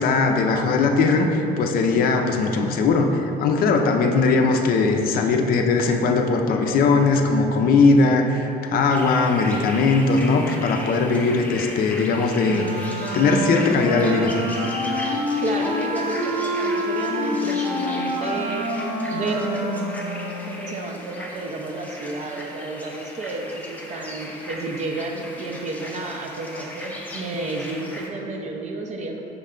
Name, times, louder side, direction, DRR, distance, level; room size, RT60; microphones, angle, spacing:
voice 1, 0.0-12.6 13.1-14.3, left 4 dB, 60° left, 4 dB, 0.4 m, -19 dB
sound 1, 8.9-28.1, left 1 dB, 10° left, 0.5 m, -37 dB
Wind instrument woodwind instrument, 12.4-20.7, left 1 dB, 65° right, 1.4 m, -27 dB
voice 2, 15.4-18.7 19.1-29.2, right 2 dB, 45° right, 2 dB, 0.5 m, -31 dB
5.8 x 2.1 x 3.6 m, 3.0 s
cardioid pair, 110°, 17 cm